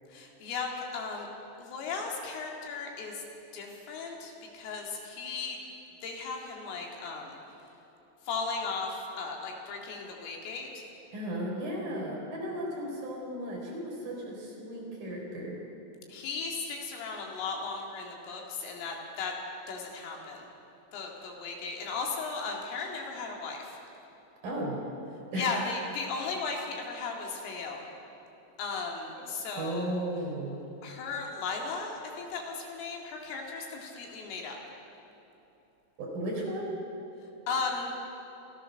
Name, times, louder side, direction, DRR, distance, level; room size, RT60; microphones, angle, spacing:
voice 1, 0.1-1.3 1.6-3.2 3.5-5.6 6.0-7.4 8.3-10.8 16.1-19.3 19.7-20.5 20.9-23.8 25.3-27.8 28.6-30.0 30.8-34.6 37.5-37.9, left 4 dB, 75° left, 0 dB, 4.7 m, -36 dB
voice 2, 11.1-15.6 24.4-24.8 25.3-25.7 29.5-30.6 36.0-36.7, right 1 dB, 45° right, -2 dB, 5.4 m, -35 dB
27.5 x 15.5 x 6.5 m, 3.0 s
omnidirectional pair, 6.0 m